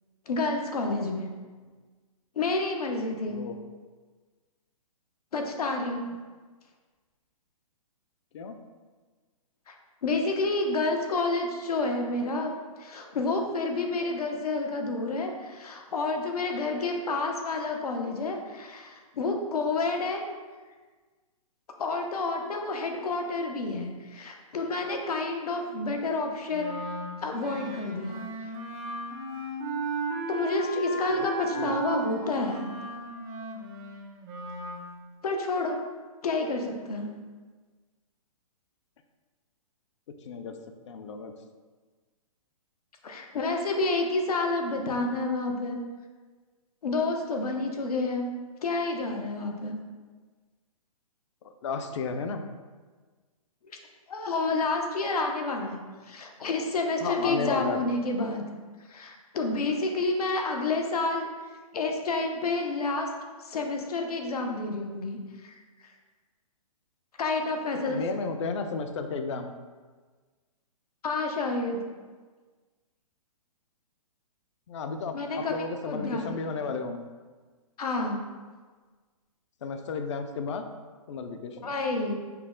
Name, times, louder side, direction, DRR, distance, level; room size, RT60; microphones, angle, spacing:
voice 1, 0.3-1.3 2.4-3.4 5.3-6.1 9.7-9.8 10.0-12.5 12.8-20.3 21.8-26.8 27.2-28.2 30.3-32.7 35.2-35.8 36.2-37.1 43.0-45.8 46.8-48.3 48.6-49.8 54.1-58.4 58.9-61.3 61.7-63.1 63.4-65.6 67.2-68.0 71.0-71.8 75.1-75.6 75.9-76.5 77.8-78.3 81.6-82.1, left 3 dB, 85° left, 3 dB, 0.7 m, -29 dB
voice 2, 3.3-3.6 6.0-6.1 8.3-8.6 31.1-31.8 40.2-40.5 40.9-41.3 51.4-52.4 57.0-57.9 67.8-69.6 74.7-77.1 79.6-80.7 81.1-81.7, left 4 dB, 55° left, 7 dB, 0.4 m, -33 dB
Wind instrument woodwind instrument, 26.5-34.8, right 2 dB, 20° right, 0.4 m, -34 dB
5.5 x 2.1 x 3.7 m, 1.4 s
hypercardioid pair, 150°, 19 cm